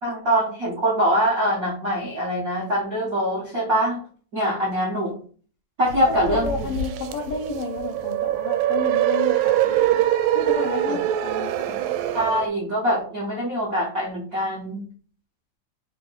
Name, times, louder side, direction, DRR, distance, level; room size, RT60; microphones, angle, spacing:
voice 1, 0.0-4.0 4.3-5.2 5.8-6.7 10.9-11.0 11.7-11.8 12.1-14.8, equal, 60° right, -5 dB, 0.9 m, -23 dB
sound 1, 5.9-12.5, right 12 dB, 80° right, 1.9 m, -23 dB
voice 2, 6.1-10.1 10.3-11.5, left 4 dB, 75° left, 1 dB, 1.3 m, -31 dB
4.6 x 2.9 x 3.9 m, 0.42 s
omnidirectional pair, 3.4 m